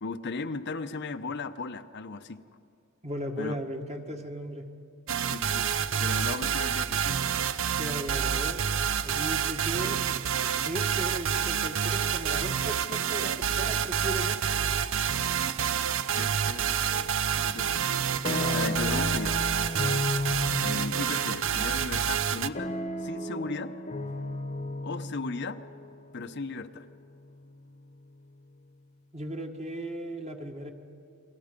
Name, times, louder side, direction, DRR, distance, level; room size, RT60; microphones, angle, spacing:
voice 1, 0.0-2.4 3.4-3.6 5.3-5.7 6.0-7.2 16.1-16.8 17.4-17.9 18.2-19.4 20.6-23.8 24.8-25.6 26.1-26.9, left 3 dB, 55° left, 9 dB, 0.8 m, -36 dB
voice 2, 3.0-4.7 7.8-8.6 9.0-10.0 10.6-14.4 29.1-30.7, equal, 30° right, 4 dB, 1.7 m, -36 dB
sound 1, 5.1-22.5, right 8 dB, 65° right, 0.6 m, -28 dB
sound 2, 16.9-17.4 17.8-27.8, left 1 dB, 35° left, 1.0 m, -34 dB
30.0 x 22.5 x 5.2 m, 2.5 s
head